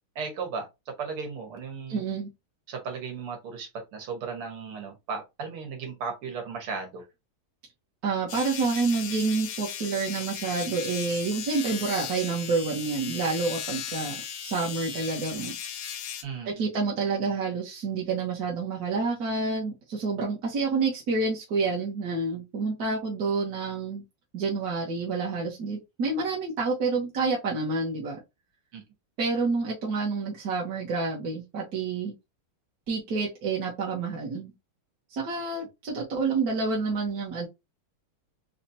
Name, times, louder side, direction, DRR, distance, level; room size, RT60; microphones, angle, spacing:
voice 1, 0.2-2.0 2.7-7.0 16.2-16.7 28.7-28.8, right 5 dB, 90° right, 2.2 m, -36 dB
voice 2, 1.9-2.3 8.0-15.5 16.4-24.0 24.3-28.2 29.2-32.1 32.9-34.5 35.1-37.5, right 4 dB, 55° right, 1.3 m, -28 dB
sound 1, 8.3-16.2, left 9 dB, 90° left, 1.6 m, -36 dB
4.3 x 2.8 x 2.6 m
omnidirectional pair, 2.3 m